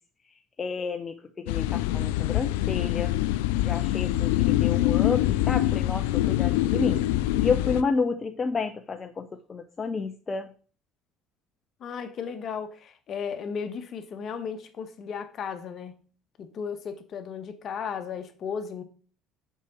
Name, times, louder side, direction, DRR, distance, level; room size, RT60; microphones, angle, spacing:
voice 1, 0.6-3.1 3.6-7.0 7.4-10.5, left 4 dB, 30° left, 0.7 m, -30 dB
sound 1, 1.5-7.8, left 15 dB, 80° left, 0.4 m, -24 dB
voice 2, 11.8-16.0 16.4-18.8, left 6 dB, 50° left, 1.2 m, -35 dB
5.5 x 4.9 x 6.4 m
hypercardioid pair, 75°, 0 cm